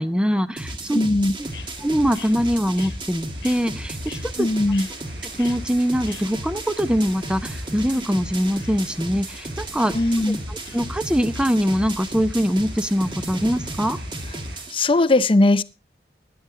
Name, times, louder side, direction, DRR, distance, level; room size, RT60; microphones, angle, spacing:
voice 1, 0.0-1.0 1.4-1.5 1.8-4.5 5.4-10.0 10.5-14.0, equal, 5° right, 12 dB, 0.8 m, -23 dB
sound 1, 0.6-14.8, right 1 dB, 30° right, 1.6 m, -34 dB
voice 2, 0.9-1.4 4.4-4.9 9.9-10.4 14.7-15.6, left 2 dB, 30° left, 15 dB, 0.7 m, -19 dB
sound 2, 1.3-13.8, left 3 dB, 70° left, 1.3 m, -45 dB
sound 3, 1.4-14.7, right 2 dB, 90° right, 5.0 m, -47 dB
16.5 x 11.5 x 3.8 m, 0.31 s
head